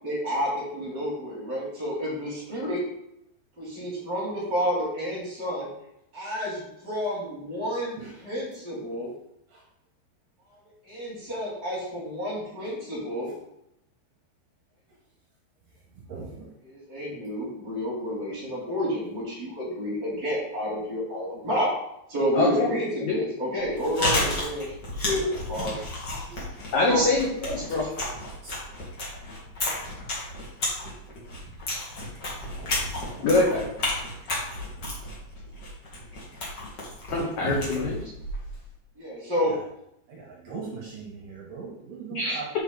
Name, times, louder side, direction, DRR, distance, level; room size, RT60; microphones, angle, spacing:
voice 1, 0.0-2.8 3.6-5.7 6.1-8.0 8.2-9.1 10.9-13.3 16.6-21.7 22.1-24.7 25.0-25.8 26.8-27.1 39.0-39.5, equal, 25° right, -7 dB, 3.3 m, -30 dB
voice 2, 16.1-16.5 25.7-25.9 26.3-26.4 28.4-28.5 33.1-33.3 37.4-37.6 39.5-39.6 40.1-42.5, right 4 dB, 65° right, -4 dB, 2.6 m, -38 dB
voice 3, 22.3-22.7 23.1-23.2 26.7-27.9 33.2-33.7 37.1-38.1 42.1-42.4, left 2 dB, 75° left, -3 dB, 1.7 m, -24 dB
Chewing mastication, 23.6-38.7, left 1 dB, 50° left, 1.2 m, -32 dB
8.3 x 5.0 x 4.0 m, 0.79 s
omnidirectional pair, 5.1 m